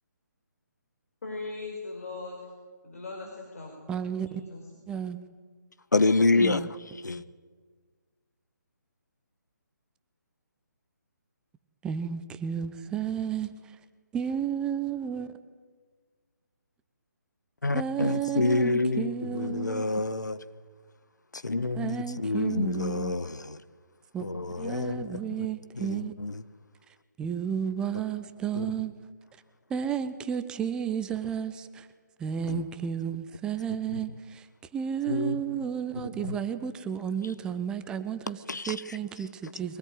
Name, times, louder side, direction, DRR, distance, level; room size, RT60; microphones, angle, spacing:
voice 1, 1.2-2.4 2.8-3.7 4.5-4.6, left 3 dB, 50° left, 4.9 m, -38 dB
voice 2, 3.9-4.4 4.9-5.2 6.4-6.7 11.8-13.8 14.1-15.3 17.7-19.8 21.7-23.2 24.1-24.2 24.6-26.1 27.2-28.9 29.7-31.9 32.2-34.5 34.7-38.4 38.7-39.8, right 8 dB, 10° right, 0.8 m, -32 dB
voice 3, 5.9-6.8 7.0-7.2 17.6-20.4 21.3-23.6 24.2-25.5 25.8-26.4 28.5-28.7 32.5-32.6 33.9-34.0 35.1-35.4 35.9-36.4 38.5-39.0, left 3 dB, 70° left, 1.2 m, -28 dB
23.5 x 18.0 x 9.4 m
figure-of-eight pair, 145°, 10 cm